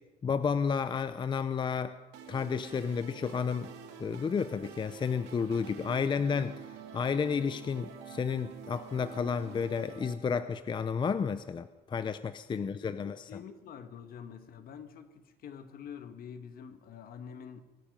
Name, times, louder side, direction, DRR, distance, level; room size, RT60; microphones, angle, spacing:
voice 1, 0.2-2.0 2.3-3.7 4.0-6.6 6.9-13.2, left 6 dB, 30° left, 0.6 m, -31 dB
sound 1, 2.1-10.1, right 7 dB, 85° right, 2.6 m, -48 dB
voice 2, 12.5-17.6, left 7 dB, 60° left, 1.5 m, -47 dB
24.0 x 10.0 x 5.3 m
cardioid pair, 110°, 17 cm